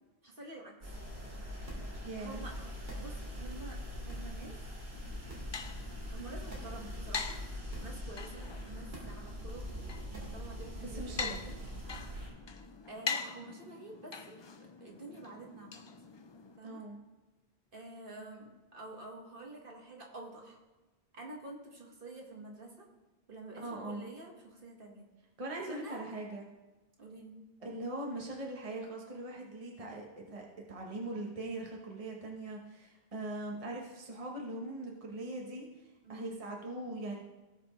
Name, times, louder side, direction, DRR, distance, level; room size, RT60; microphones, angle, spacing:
voice 1, 0.2-0.7 2.2-2.7 3.0-4.6 6.1-7.4 7.8-11.6 12.9-15.9 16.6-16.8 17.7-20.6 21.1-22.9 23.3-25.1 25.7-26.1 27.0-27.3 36.0-36.4, right 2 dB, 60° right, -1 dB, 1.8 m, -48 dB
sound 1, 0.8-12.3, equal, 85° right, 2.7 m, -42 dB
voice 2, 2.0-2.4 10.8-11.4 16.6-17.0 23.6-24.1 25.4-26.5 27.6-37.2, right 2 dB, 35° right, -1 dB, 1.1 m, -41 dB
sound 2, 4.9-16.6, left 5 dB, 40° left, 0.4 m, -44 dB
17.5 x 5.8 x 3.1 m, 1.2 s
omnidirectional pair, 1.0 m